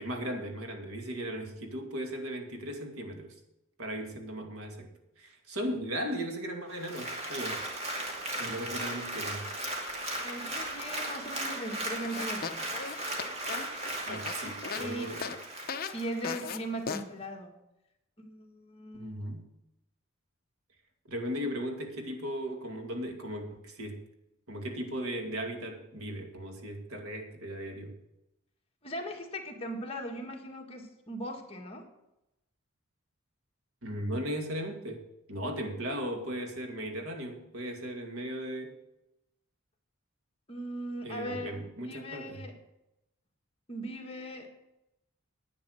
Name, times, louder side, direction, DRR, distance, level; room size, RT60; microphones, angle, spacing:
voice 1, 0.0-3.4 3.8-4.9 5.2-7.6 8.4-9.5 14.1-15.4 18.9-19.5 21.1-24.0 24.5-28.0 33.8-35.0 35.3-38.8 41.0-42.4, equal, 90° right, 4 dB, 2.3 m, -37 dB
Applause, 6.7-16.5 16.9-17.0, right 1 dB, 30° right, 2.3 m, -37 dB
voice 2, 10.2-12.8 14.7-15.1 15.9-17.6 18.2-19.1 28.8-31.9 40.5-41.5 41.8-42.6 43.7-44.5, right 1 dB, 30° left, 1 dB, 1.9 m, -39 dB
sound 1, 12.0-14.9 15.2-15.4 15.7-15.9 16.2-16.6 16.9-17.0, left 5 dB, 45° left, 0.8 m, -37 dB
10.5 x 8.8 x 6.7 m, 0.89 s
head